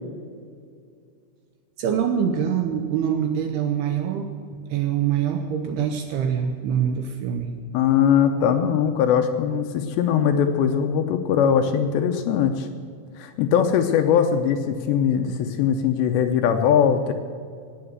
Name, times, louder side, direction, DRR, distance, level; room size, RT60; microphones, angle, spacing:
voice 1, 1.8-4.3 4.7-7.6, right 8 dB, 80° right, 5 dB, 2.3 m, -24 dB
voice 2, 7.7-12.7 13.2-17.1, left 8 dB, 80° left, 6 dB, 2.6 m, -21 dB
17.5 x 8.7 x 8.0 m, 2.2 s
omnidirectional pair, 5.7 m